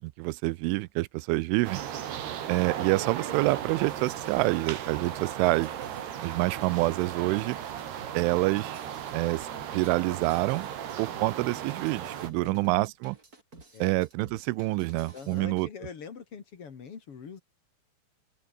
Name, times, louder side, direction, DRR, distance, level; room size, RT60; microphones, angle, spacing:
voice 1, 0.0-1.8 2.5-5.7 6.2-7.6 8.1-8.8 9.1-9.5 9.7-10.7 11.0-13.2 13.8-15.7, right 21 dB, 90° right, 3.1 m, -27 dB
sound 1, 1.6-12.3, right 10 dB, 60° right, 4.1 m, -36 dB
sound 2, 3.3-15.7, right 3 dB, 20° right, 3.8 m, -52 dB
voice 2, 12.4-12.8 13.7-13.9 15.1-17.4, left 6 dB, 40° left, 2.2 m, -44 dB
open air
omnidirectional pair, 5.6 m